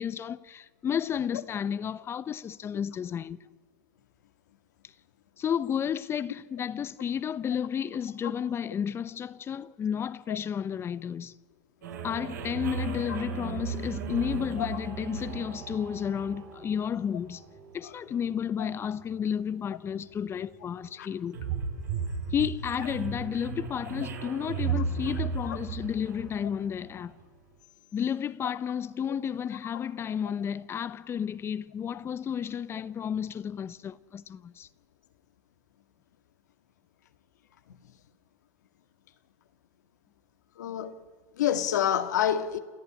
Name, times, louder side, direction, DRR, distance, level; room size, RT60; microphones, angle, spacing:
voice 1, 0.0-3.4 5.4-11.4 12.0-17.4 17.7-21.4 22.3-27.1 27.9-34.7, left 8 dB, 25° left, 0.9 m, -32 dB
sound 1, 11.8-27.2, right 6 dB, 90° right, 4.5 m, -36 dB
voice 2, 40.6-40.9 41.4-42.6, left 10 dB, 90° left, 1.9 m, -27 dB
29.5 x 14.0 x 9.9 m
supercardioid pair, 120°, 9 cm